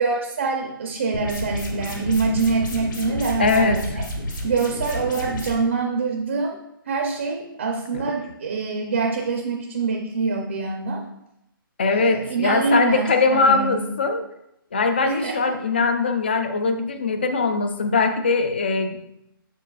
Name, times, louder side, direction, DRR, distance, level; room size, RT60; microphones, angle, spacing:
voice 1, 0.0-4.0 4.4-6.6 6.9-11.0 11.9-13.8 15.1-15.6, right 4 dB, 30° right, 2 dB, 0.5 m, -25 dB
sound 1, 1.1-5.5, left 1 dB, 60° left, 1.6 m, -30 dB
voice 2, 3.4-3.8 7.9-8.0 11.8-14.3 14.7-19.0, left 4 dB, 25° left, 8 dB, 0.4 m, -21 dB
7.3 x 6.6 x 2.3 m, 0.83 s
hypercardioid pair, 180°, 12 cm